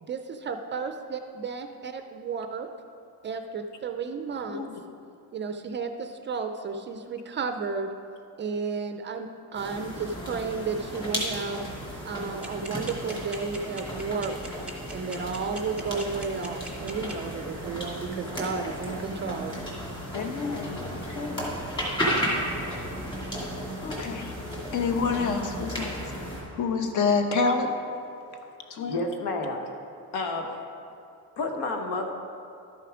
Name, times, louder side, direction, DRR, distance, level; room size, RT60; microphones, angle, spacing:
voice 1, 0.0-2.7 3.2-4.7 5.3-7.9 8.4-11.6 12.0-14.4 14.9-19.6, right 4 dB, 30° right, 6 dB, 0.4 m, -33 dB
sound 1, 9.5-26.4, equal, 10° left, 2.5 m, -34 dB
sound 2, 12.4-17.1, right 1 dB, 5° right, 1.0 m, -40 dB
voice 2, 20.1-20.8 21.1-21.5 23.8-24.3 24.7-26.0 26.5-27.7 28.7-29.0, left 4 dB, 50° left, 5 dB, 1.0 m, -27 dB
voice 3, 28.9-29.6 30.1-30.6 31.4-32.1, left 2 dB, 85° left, 3 dB, 1.4 m, -30 dB
12.5 x 6.7 x 4.9 m, 2.5 s
cardioid pair, 165°, 38 cm